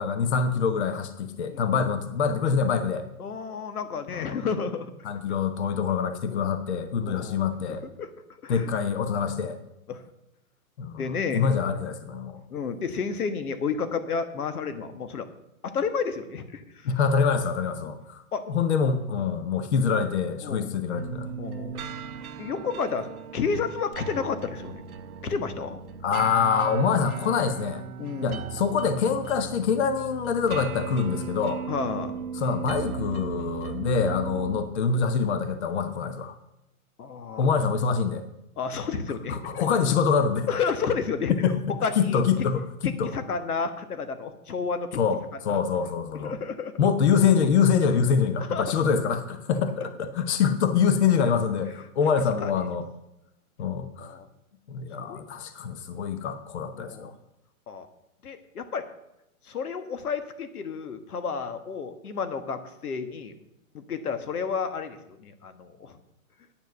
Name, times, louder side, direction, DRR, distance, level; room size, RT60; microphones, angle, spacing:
voice 1, 0.0-3.0 4.1-4.5 5.0-7.8 8.5-9.6 10.8-12.4 16.8-21.3 26.0-27.8 28.2-31.6 32.4-36.3 37.4-38.2 39.3-40.5 41.4-41.6 42.0-42.7 43.0-43.1 45.0-46.3 46.8-52.9 53.6-54.1 54.7-57.1, left 6 dB, 50° left, 10 dB, 0.9 m, -25 dB
voice 2, 1.5-1.9 3.2-4.9 6.3-6.4 7.0-8.1 8.4-8.7 9.9-10.0 11.0-11.5 12.5-15.3 15.6-16.9 18.3-18.4 20.4-20.7 21.4-21.8 22.4-24.8 25.2-25.8 28.0-28.4 31.7-32.2 34.4-34.6 37.0-37.4 38.6-39.6 40.5-41.3 41.8-42.2 42.8-45.0 45.5-45.6 46.2-46.7 48.4-48.7 52.0-52.5 54.0-54.3 55.0-55.2 56.8-57.1 57.7-57.9 58.2-58.8 59.4-63.3 63.7-65.9, left 5 dB, 90° left, 10 dB, 1.4 m, -31 dB
sound 1, 20.9-34.6, right 6 dB, 80° right, 1.0 m, -37 dB
9.4 x 7.3 x 6.8 m, 0.86 s
hypercardioid pair, 165°, 43 cm